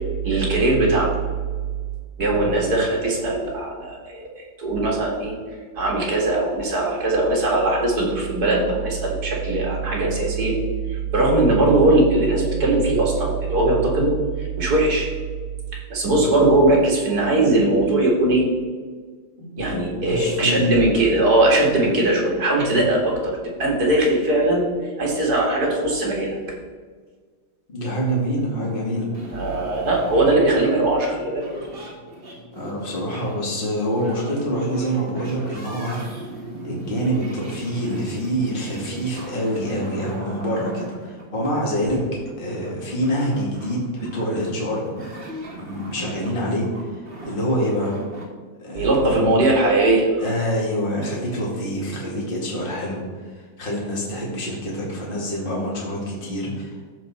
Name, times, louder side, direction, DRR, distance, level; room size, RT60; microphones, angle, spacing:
voice 1, 0.2-1.2 2.2-5.3 5.8-10.6 10.9-15.1 15.9-18.4 19.6-26.4 29.3-31.4 41.9-42.0 48.7-50.2, right 2 dB, 50° right, -2 dB, 2.2 m, -20 dB
voice 2, 9.8-10.1 19.4-20.7 27.7-29.4 32.5-36.0 36.6-45.0 45.5-48.0 48.6-49.3 50.2-56.9, equal, 25° left, -4 dB, 2.2 m, -26 dB
sound 1, 29.1-48.2, right 1 dB, 30° right, 1.3 m, -38 dB
13.5 x 4.6 x 4.2 m, 1.5 s
omnidirectional pair, 2.3 m